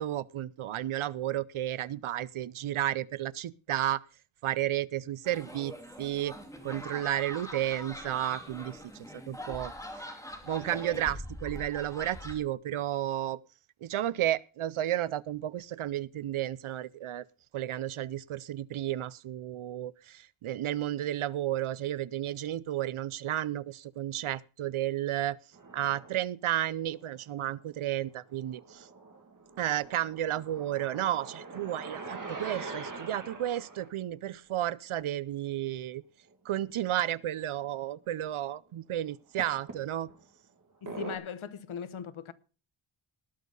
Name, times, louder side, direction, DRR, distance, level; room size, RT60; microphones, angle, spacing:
voice 1, 0.0-4.0 4.4-6.4 6.6-9.7 10.0-10.1 10.4-13.4 13.8-17.3 17.5-25.4 25.7-28.9 29.6-36.0 36.4-40.1, right 12 dB, 80° right, 0.6 m, -32 dB
sound 1, 5.2-12.3, equal, 5° left, 2.3 m, -43 dB
sound 2, 25.5-26.2 26.9-27.8 28.2-33.9 36.3-36.4 36.7-36.9 37.7-37.8 39.4-40.2 40.9-41.2, right 3 dB, 40° right, 2.2 m, -43 dB
voice 2, 40.8-42.3, left 7 dB, 70° left, 1.0 m, -39 dB
19.0 x 6.4 x 5.3 m
wide cardioid pair, 175°, 49 cm